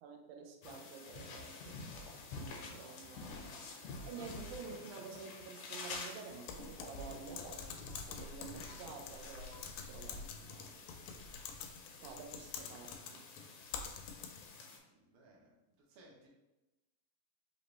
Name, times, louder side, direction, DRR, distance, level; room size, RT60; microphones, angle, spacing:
voice 1, 0.0-2.1 2.4-10.9 12.0-13.3, right 6 dB, 85° right, 3 dB, 2.1 m, -50 dB
sound 1, 0.6-14.8, left 3 dB, 75° left, 1.8 m, -49 dB
Water / Liquid, 5.0-5.5 5.8-8.3 8.6-8.8 9.2-9.3, right 1 dB, 50° left, 1.0 m, -58 dB
Typing, 6.5-14.6, left 6 dB, 90° left, 2.0 m, -47 dB
voice 2, 14.9-16.3, right 1 dB, 65° right, -3 dB, 1.5 m, -63 dB
5.3 x 2.9 x 3.0 m, 1.0 s
omnidirectional pair, 3.4 m